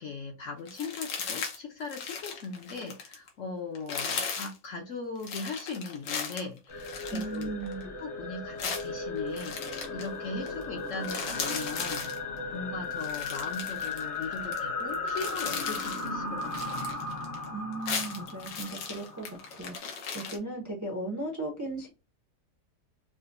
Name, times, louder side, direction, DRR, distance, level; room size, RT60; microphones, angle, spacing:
voice 1, 0.0-7.5 7.8-16.8, left 4 dB, 60° left, 0.8 m, -39 dB
sound 1, 0.7-1.6 1.8-3.3 3.7-4.6 5.2-7.8 8.6-10.1 10.5-10.6 10.9-12.2 12.9-14.6 14.9-16.1 16.4-17.5 17.7-20.4, left 5 dB, 85° left, 1.5 m, -37 dB
sound 2, 6.7-19.8, left 3 dB, 40° left, 0.5 m, -36 dB
voice 2, 7.1-7.9 17.5-19.3 19.6-21.9, right 2 dB, 25° right, 0.4 m, -36 dB
4.9 x 2.1 x 2.5 m
omnidirectional pair, 1.8 m